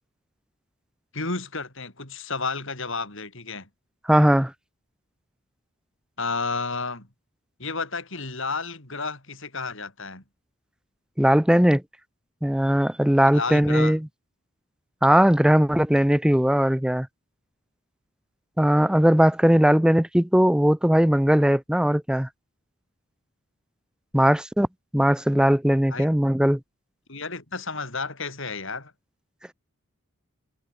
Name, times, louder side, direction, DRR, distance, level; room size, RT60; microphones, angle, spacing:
voice 1, 1.1-3.7 6.2-7.1 7.6-10.2 13.3-14.0 25.9-26.1 27.1-28.9, left 4 dB, 60° left, 5.7 m, -31 dB
voice 2, 4.1-4.5 11.2-11.8 12.4-14.1 15.0-17.1 18.6-22.3 24.1-24.7 24.9-26.6, equal, 5° right, 0.5 m, -19 dB
head